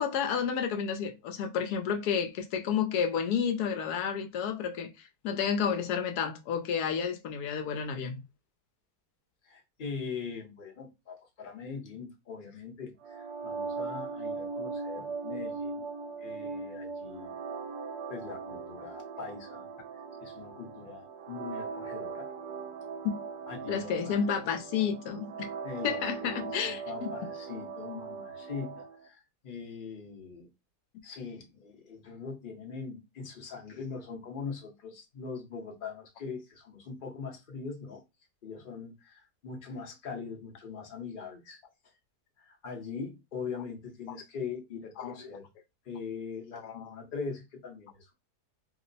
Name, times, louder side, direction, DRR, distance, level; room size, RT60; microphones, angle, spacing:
voice 1, 0.0-8.2 23.0-23.2 23.7-25.5 25.8-27.1 45.0-45.1 46.6-46.9, left 7 dB, 75° left, 1.1 m, -31 dB
voice 2, 9.4-15.9 16.2-17.4 18.1-19.7 19.9-22.3 23.5-24.2 25.6-30.5 31.0-38.0 38.4-41.9 42.4-45.5 45.8-48.1, left 5 dB, 40° left, 0.8 m, -42 dB
sound 1, 13.0-29.0, right 5 dB, 80° right, 1.1 m, -39 dB
2.9 x 2.0 x 3.9 m
omnidirectional pair, 1.7 m